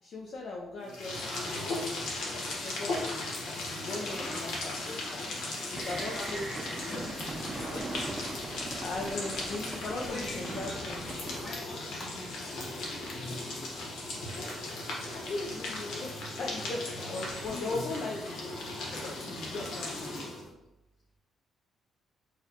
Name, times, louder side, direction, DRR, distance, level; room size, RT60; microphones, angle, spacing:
voice 1, 0.0-3.3 3.8-5.2 5.7-7.1 7.7-7.8 8.8-11.2 15.1-18.5 19.5-19.7, left 2 dB, 60° left, -1 dB, 0.5 m, -39 dB
sound 1, 0.8-20.5, left 2 dB, 85° left, 1.0 m, -37 dB
voice 2, 4.1-4.5 5.7-8.2 9.8-10.8 11.1-13.9 14.3-14.6 15.0-15.2 16.8-17.0 17.5-17.8 18.8-20.5, left 1 dB, 40° left, -2 dB, 1.2 m, -45 dB
sound 2, 5.7-11.7, right 2 dB, 30° right, 0.5 m, -41 dB
4.6 x 2.2 x 2.8 m, 0.99 s
cardioid pair, 90°, 0 cm